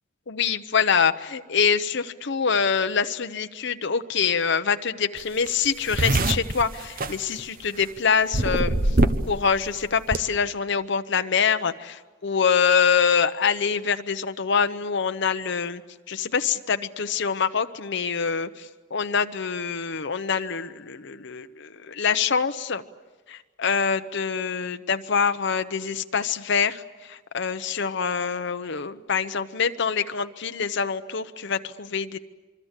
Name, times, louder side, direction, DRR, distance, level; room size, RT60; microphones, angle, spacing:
voice 1, 0.3-8.8 9.3-15.8 16.1-18.7 18.9-22.8 23.3-32.2, left 6 dB, 65° left, 9 dB, 0.9 m, -25 dB
sound 1, 5.2-5.3 5.5-7.8 8.3-9.4 9.6-10.2, right 2 dB, 50° right, 1.1 m, -23 dB
26.0 x 24.5 x 8.3 m, 1.3 s
head